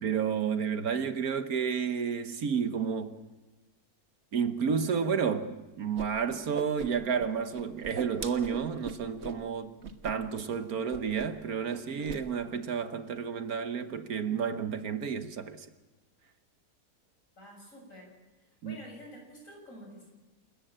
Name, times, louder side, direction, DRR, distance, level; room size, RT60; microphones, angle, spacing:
voice 1, 0.0-3.1 4.3-9.7 10.0-15.7 18.6-18.8, right 6 dB, 65° right, 1.5 m, -31 dB
Whoosh swoosh swish, 6.0-6.1 6.3-7.3 7.5-9.4 9.8-10.1 10.4-10.6 10.9-11.4 11.7-12.2, right 5 dB, 45° right, 1.5 m, -40 dB
voice 2, 17.4-18.1 18.6-20.1, equal, 50° left, 7.7 m, -49 dB
28.0 x 14.5 x 8.9 m
omnidirectional pair, 1.7 m